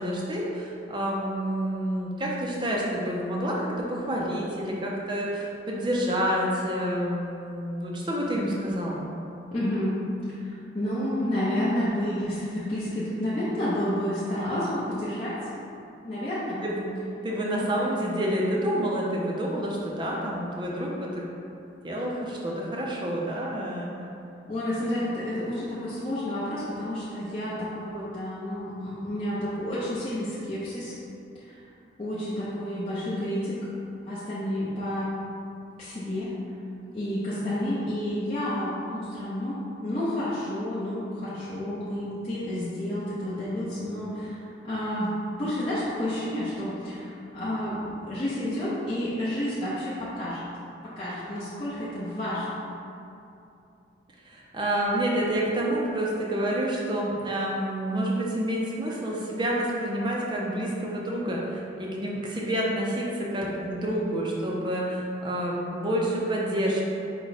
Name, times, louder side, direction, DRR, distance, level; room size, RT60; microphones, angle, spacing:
voice 1, 0.0-9.1 16.6-16.9 17.2-21.2 21.8-23.9 54.2-66.8, right 1 dB, 25° right, -3 dB, 0.5 m, -28 dB
voice 2, 9.5-10.0 10.3-15.3 16.0-16.6 17.5-17.6 24.5-30.9 31.4-31.6 32.0-33.6 34.1-35.1 35.8-36.3 36.9-39.6 39.8-50.4 51.0-52.6, left 1 dB, 30° left, -11 dB, 0.6 m, -30 dB
4.9 x 2.2 x 4.0 m, 2.7 s
head